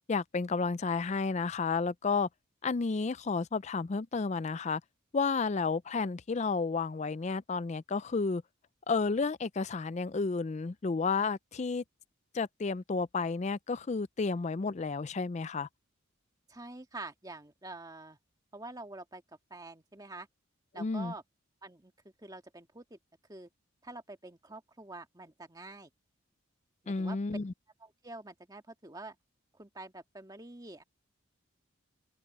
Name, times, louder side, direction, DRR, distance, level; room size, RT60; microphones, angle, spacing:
voice 1, 0.1-2.3 2.6-4.8 5.1-8.4 8.9-11.8 12.3-15.7 20.7-21.1 26.9-27.5, left 4 dB, 35° left, 0.4 m, -31 dB
voice 2, 16.5-18.2 18.5-19.2 19.5-20.3 20.7-21.2 21.6-21.9 22.2-23.0 23.3-23.5 23.8-25.9 26.8-27.2 27.8-29.2 29.5-30.8, right 2 dB, 20° right, 1.7 m, -46 dB
open air
head